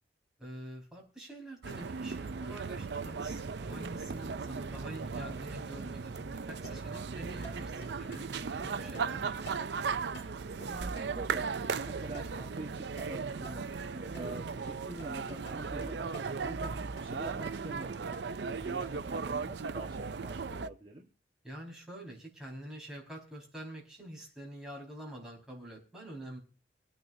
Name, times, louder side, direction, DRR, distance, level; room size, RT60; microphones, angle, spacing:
voice 1, 0.4-9.4 21.4-26.4, right 1 dB, 5° right, -4 dB, 4.9 m, -46 dB
sound 1, 1.6-20.7, right 5 dB, 65° right, 0.5 m, -37 dB
sound 2, 6.5-12.7 13.0-14.7 15.0-19.0, right 1 dB, 65° left, 5.4 m, -51 dB
voice 2, 8.5-9.2 10.7-13.7 13.9-16.1 16.4-21.0, right 1 dB, 25° right, 0 dB, 1.3 m, -45 dB
25.5 x 9.4 x 2.7 m, 0.33 s
head